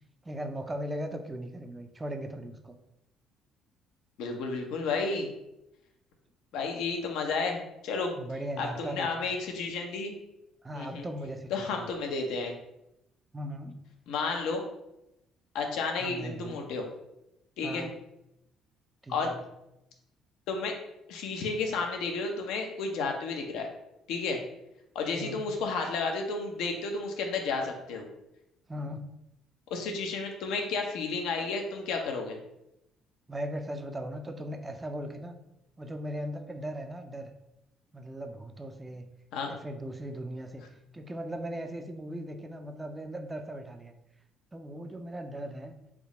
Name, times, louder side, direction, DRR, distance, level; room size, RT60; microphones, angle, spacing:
voice 1, 0.2-2.8 8.2-9.1 10.6-11.9 13.3-13.8 16.0-16.6 17.6-18.0 19.0-19.5 25.2-25.5 28.7-29.1 33.3-35.4 35.8-37.3 37.9-39.1 39.5-40.7 40.9-43.9 44.5-45.8, right 1 dB, 20° right, 6 dB, 0.4 m, -38 dB
voice 2, 4.2-5.3 6.5-8.1 8.6-10.1 10.7-11.1 11.5-12.5 14.1-14.6 15.5-16.9 17.6-17.9 19.1-19.3 20.5-20.8 21.1-23.7 24.1-24.4 24.9-28.1 29.7-32.4 39.3-39.5, left 4 dB, 75° left, 3 dB, 0.6 m, -32 dB
3.5 x 2.0 x 3.7 m, 0.86 s
supercardioid pair, 65°, 0 cm